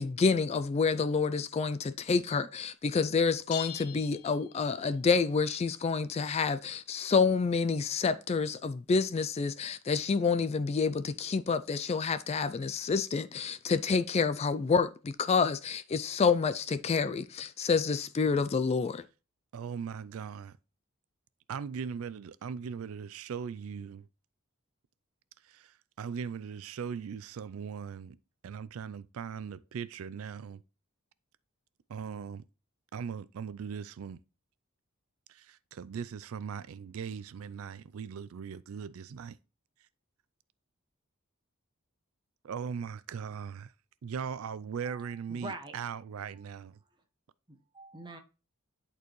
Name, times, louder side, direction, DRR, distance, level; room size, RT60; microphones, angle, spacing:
voice 1, 0.0-19.0, left 5 dB, 30° left, 0.3 m, -28 dB
sound 1, 3.5-5.1, left 11 dB, 85° left, 0.8 m, -42 dB
voice 2, 19.5-20.5 21.5-24.0 25.5-28.2 28.4-30.6 31.9-32.4 32.9-34.2 35.3-39.4 42.5-43.7 44.0-46.8, right 6 dB, 75° right, 0.4 m, -39 dB
voice 3, 44.8-45.8 46.3-46.5 47.5-48.2, right 2 dB, 20° right, 1.2 m, -45 dB
11.0 x 4.5 x 3.1 m
head